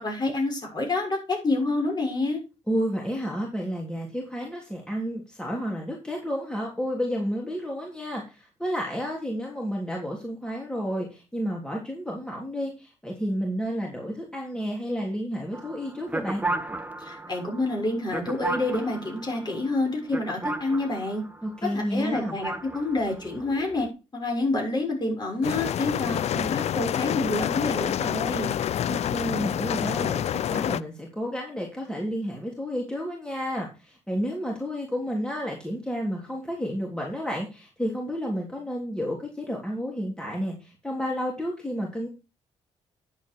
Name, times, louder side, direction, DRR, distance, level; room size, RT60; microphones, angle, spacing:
voice 1, 0.0-2.4 17.0-21.2 21.6-23.9 24.1-28.5, left 2 dB, 35° left, 1 dB, 6.5 m, -28 dB
voice 2, 2.7-16.4 21.4-22.4 28.9-42.1, equal, 5° left, -1 dB, 3.4 m, -31 dB
sound 1, 15.5-21.7 22.1-23.9, right 2 dB, 10° right, 1.3 m, -35 dB
sound 2, 25.4-30.8, left 10 dB, 65° left, 0.5 m, -27 dB
10.0 x 7.9 x 4.7 m, 0.30 s
cardioid pair, 75°, 12 cm